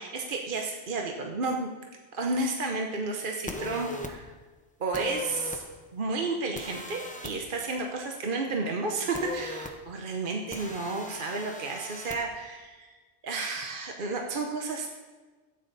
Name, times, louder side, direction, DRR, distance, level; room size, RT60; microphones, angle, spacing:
voice 1, 0.0-1.7 2.1-4.3 4.8-5.6 5.9-12.9 13.2-14.9, right 3 dB, 50° right, 1 dB, 1.0 m, -32 dB
sound 1, 3.5-4.1 4.9-5.6 6.6-7.3 9.1-9.7 10.5-12.2, left 1 dB, 5° left, 0.8 m, -38 dB
14.0 x 9.2 x 4.1 m, 1.3 s
omnidirectional pair, 1.2 m